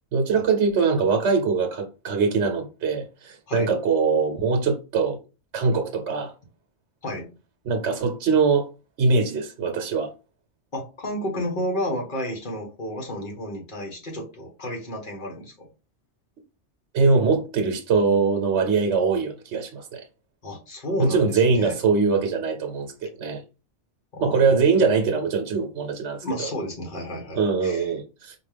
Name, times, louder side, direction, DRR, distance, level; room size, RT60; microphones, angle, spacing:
voice 1, 0.1-5.2 5.5-6.3 7.6-8.7 9.0-10.1 16.9-20.0 21.0-23.4 24.2-26.5 27.4-28.3, right 4 dB, 75° right, 1.0 m, -22 dB
voice 2, 10.7-15.7 20.4-21.8 24.1-24.6 26.2-27.9, equal, 45° left, 1.3 m, -32 dB
4.4 x 2.3 x 3.3 m
omnidirectional pair, 1.2 m